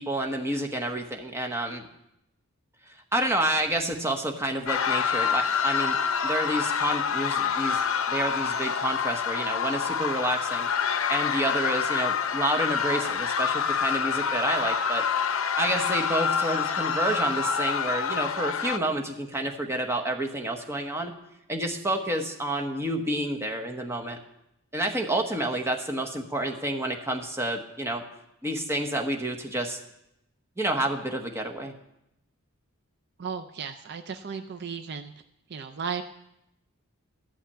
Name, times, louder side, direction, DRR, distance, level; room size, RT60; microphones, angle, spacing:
voice 1, 0.0-1.8 3.1-6.0 6.2-7.8 8.1-10.7 11.1-15.1 15.6-21.1 21.5-24.2 24.7-28.0 28.4-29.8 30.6-31.7, right 1 dB, 10° right, 4 dB, 1.0 m, -29 dB
sound 1, 4.7-18.8, left 6 dB, 65° left, 0.7 m, -27 dB
voice 2, 33.2-35.1 35.5-36.0, right 6 dB, 50° right, 8 dB, 0.4 m, -35 dB
12.5 x 5.8 x 8.5 m, 0.84 s
head